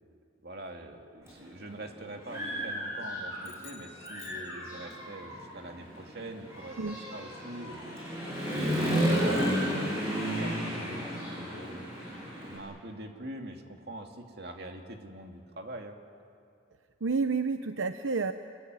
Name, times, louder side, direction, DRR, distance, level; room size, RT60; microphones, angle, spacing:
voice 1, 0.4-6.8 7.1-7.8 8.5-11.0 11.4-11.8 12.5-16.0, right 1 dB, 55° right, 3 dB, 2.6 m, -43 dB
Human voice / Motorcycle, 1.3-1.4 1.9-3.6 4.0-12.6, equal, 15° right, 7.9 m, -32 dB
sound 1, 3.4-5.2, left 9 dB, 70° left, 7.1 m, -53 dB
voice 2, 17.0-18.3, right 4 dB, 80° right, 9 dB, 0.8 m, -29 dB
27.0 x 21.5 x 9.7 m, 2.3 s
head